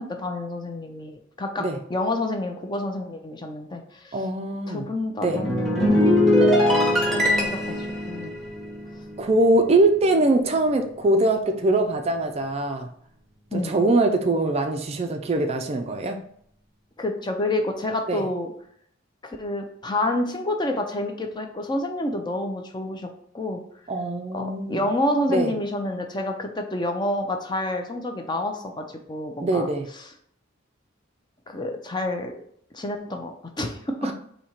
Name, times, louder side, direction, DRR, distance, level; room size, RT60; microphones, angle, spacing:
voice 1, 0.0-1.6 1.9-4.2 4.7-6.1 7.0-7.7 8.1-8.3 13.5-13.7 17.0-18.5 19.2-23.1 23.3-23.6 24.3-29.7 31.5-32.4 32.7-34.1, left 1 dB, 20° left, 4 dB, 0.5 m, -28 dB
voice 2, 4.1-4.9 5.2-5.4 9.2-12.9 13.5-16.2 18.1-18.2 23.9-24.8 25.3-25.5 29.4-29.9 34.0-34.1, right 2 dB, 30° right, 5 dB, 0.4 m, -22 dB
sound 1, 5.2-9.8 10.1-10.4, left 1 dB, ahead, 0.9 m, -22 dB
4.2 x 2.8 x 4.4 m, 0.66 s
head